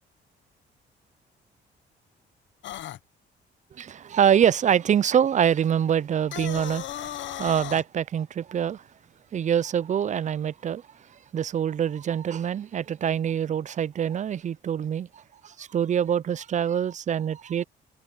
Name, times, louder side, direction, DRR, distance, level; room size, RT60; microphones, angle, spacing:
sound 1, 2.6-3.0 6.2-7.8, left 12 dB, 70° left, 0.9 m, -35 dB
voice 1, 3.7-8.8 9.3-10.8 11.3-17.6, right 9 dB, 40° right, 0.4 m, -25 dB
cardioid pair, 90°, 20 cm